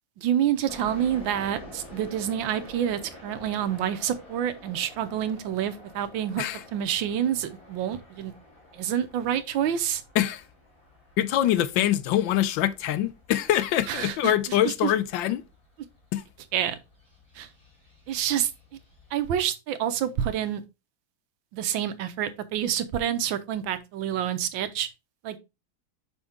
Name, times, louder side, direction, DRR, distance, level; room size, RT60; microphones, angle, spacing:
voice 1, 0.2-6.4 6.7-8.3 8.7-10.0 13.9-14.9 16.5-16.8 17.3-17.5 18.1-18.5 19.1-20.6 21.5-24.9 25.2-25.4, right 10 dB, 75° right, 1.4 m, -28 dB
sound 1, 0.7-19.2, left 1 dB, 25° left, 3.0 m, -49 dB
voice 2, 11.2-15.4 16.1-16.2, left 12 dB, 75° left, 1.2 m, -24 dB
5.7 x 5.3 x 3.5 m
omnidirectional pair, 2.2 m